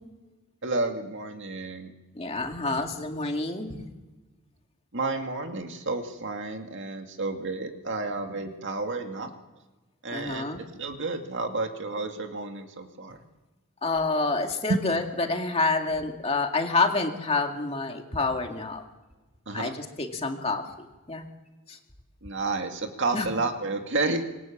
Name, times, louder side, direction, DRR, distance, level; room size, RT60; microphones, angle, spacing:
voice 1, 0.6-1.9 4.9-9.3 10.0-13.2 19.5-19.7 22.2-24.2, right 3 dB, 55° right, 4 dB, 2.2 m, -31 dB
voice 2, 2.1-3.8 10.1-10.6 13.8-18.8 19.5-20.6 21.1-21.2 21.7-21.8 23.1-23.3, left 3 dB, 25° left, 3 dB, 2.3 m, -28 dB
26.0 x 22.0 x 7.4 m, 1.2 s
head